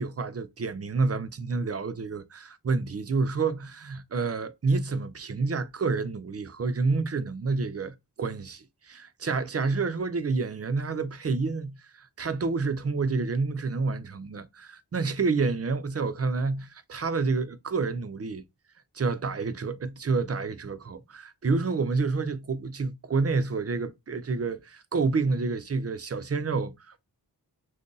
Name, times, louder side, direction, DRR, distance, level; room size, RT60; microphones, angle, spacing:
voice 1, 0.0-18.4 18.9-27.0, right 4 dB, 35° right, 0.4 m, -29 dB
2.5 x 2.5 x 3.7 m
wide cardioid pair, 55°, 41 cm